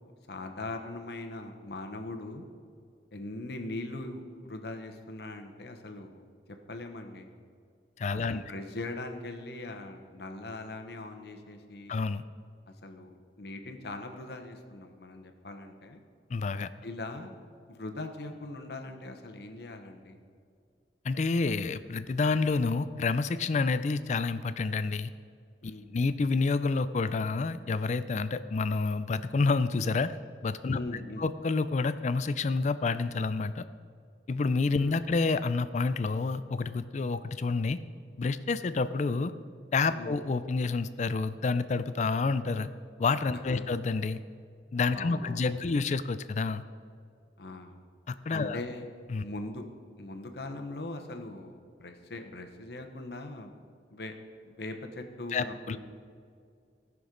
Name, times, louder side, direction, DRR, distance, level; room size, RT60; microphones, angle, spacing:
voice 1, 0.3-2.4 3.1-6.2 6.7-7.3 8.1-11.9 12.7-16.0 16.8-17.3 17.7-20.2 25.6-25.9 30.7-31.2 34.8-35.0 39.9-40.2 43.5-43.6 44.9-45.7 47.4-47.8 48.3-48.8 49.2-49.6 50.0-53.5 53.9-54.1 54.4-55.8, left 2 dB, 65° left, 5 dB, 1.0 m, -41 dB
voice 2, 8.0-8.4 11.9-12.2 16.3-16.7 21.0-25.1 25.9-30.1 30.4-30.8 31.2-33.6 34.3-37.8 38.2-39.3 39.7-42.7 43.0-44.2 44.7-46.6 48.1-48.6 49.1-49.2 55.3-55.8, left 4 dB, 40° left, 13 dB, 0.4 m, -28 dB
17.5 x 6.1 x 3.9 m, 2.3 s
head